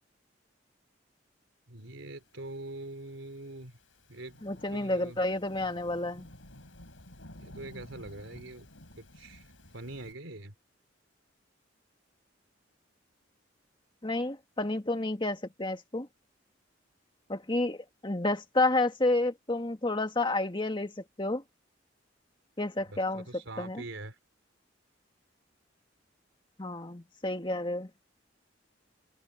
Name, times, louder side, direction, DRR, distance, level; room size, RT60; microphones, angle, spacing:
voice 1, 1.7-3.8 4.1-4.4 4.7-5.2 7.4-8.7 9.0-9.5 9.7-10.5 22.9-24.2, right 2 dB, 85° right, 3.7 m, -43 dB
Thunderstorm / Rain, 2.4-10.1, left 1 dB, 90° left, 5.9 m, -53 dB
voice 2, 4.4-6.3 14.0-16.1 17.3-20.9 21.2-21.4 22.6-23.3 23.6-23.8 26.6-27.9, left 2 dB, 25° left, 2.0 m, -30 dB
head